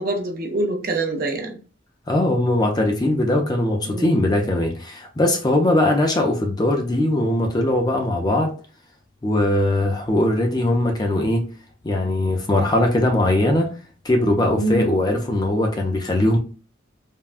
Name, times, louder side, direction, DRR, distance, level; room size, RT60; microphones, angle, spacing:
voice 1, 0.0-1.6 3.9-4.2 14.6-14.9, right 2 dB, 50° right, 0.6 m, -25 dB
voice 2, 2.1-8.5 9.2-11.4 11.8-13.7 14.0-16.4, left 1 dB, 20° left, 0.5 m, -20 dB
3.5 x 2.1 x 2.4 m
head